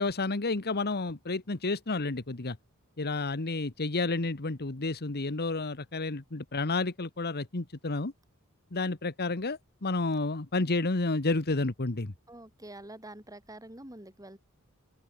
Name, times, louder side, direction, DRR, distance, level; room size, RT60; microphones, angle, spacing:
voice 1, 0.0-2.6 3.0-8.1 8.7-12.1, left 3 dB, 45° left, 1.4 m, -30 dB
voice 2, 12.3-14.4, right 1 dB, 15° right, 7.3 m, -46 dB
open air
head